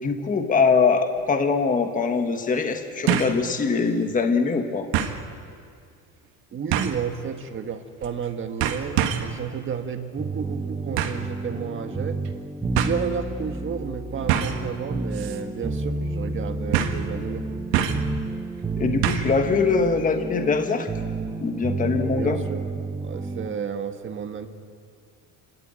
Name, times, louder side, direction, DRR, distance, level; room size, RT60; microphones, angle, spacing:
voice 1, 0.0-4.9 18.8-20.9 21.4-22.4, left 4 dB, 20° left, 6 dB, 1.4 m, -22 dB
sound 1, 1.2-1.3 3.1-3.4 3.8-3.9 4.9-5.2 6.7-7.1 8.0-8.3 8.6-9.4 11.0-11.3 12.3-12.4 12.8-13.0 14.3-14.7 15.1-15.4 15.7-15.8 16.7-17.1 17.7-18.1 19.0-19.4 19.7-19.8, right 10 dB, 85° right, 1.7 m, -25 dB
voice 2, 6.5-12.2 12.7-17.5 22.0-22.6 23.0-24.5, right 6 dB, 35° right, 6 dB, 1.5 m, -32 dB
sound 2, 10.2-23.5, right 3 dB, 15° right, 0.9 m, -31 dB
28.5 x 12.5 x 9.0 m, 2.2 s
cardioid pair, 140°, 37 cm